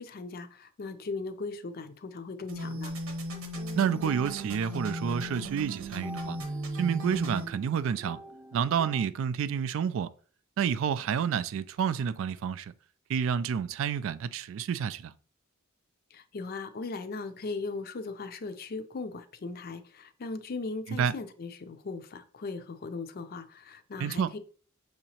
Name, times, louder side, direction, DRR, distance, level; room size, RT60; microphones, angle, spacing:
voice 1, 0.0-2.9 16.1-24.4, left 3 dB, 45° left, 0.5 m, -38 dB
sound 1, 2.5-7.5, equal, 85° right, 1.0 m, -36 dB
sound 2, 3.5-9.1, right 1 dB, ahead, 0.5 m, -47 dB
voice 2, 3.8-6.4 6.8-8.2 8.5-10.1 10.6-12.7 13.1-15.1 21.0-21.1 24.0-24.3, right 7 dB, 65° right, 0.3 m, -29 dB
6.2 x 2.9 x 2.8 m
head